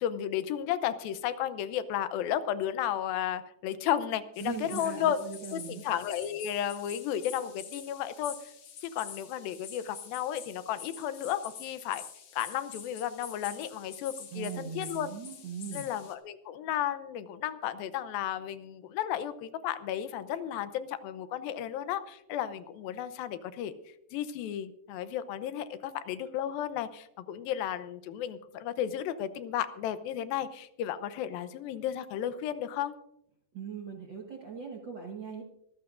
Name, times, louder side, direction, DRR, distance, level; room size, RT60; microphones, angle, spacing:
voice 1, 0.0-5.2 5.5-8.5 8.8-12.0 12.3-15.1 15.7-23.7 24.1-32.9, left 10 dB, 90° left, 12 dB, 2.6 m, -33 dB
sound 1, 4.3-16.1, left 8 dB, 55° left, 2.3 m, -47 dB
voice 2, 4.4-5.8 14.3-15.8 33.5-35.4, right 7 dB, 55° right, 0 dB, 1.3 m, -40 dB
24.5 x 14.0 x 2.5 m, 0.81 s
omnidirectional pair, 4.1 m